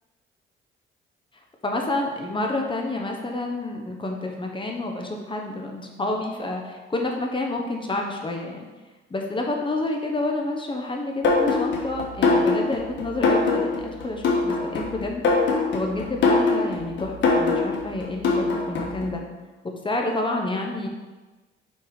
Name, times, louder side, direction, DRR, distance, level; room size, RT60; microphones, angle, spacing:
voice 1, 1.6-8.6 9.1-19.2 19.6-20.9, left 2 dB, 25° left, 1 dB, 1.0 m, -29 dB
sound 1, 11.2-19.1, left 3 dB, 70° left, 1.4 m, -23 dB
5.0 x 4.5 x 4.8 m, 1.2 s
cardioid pair, 90°, 20 cm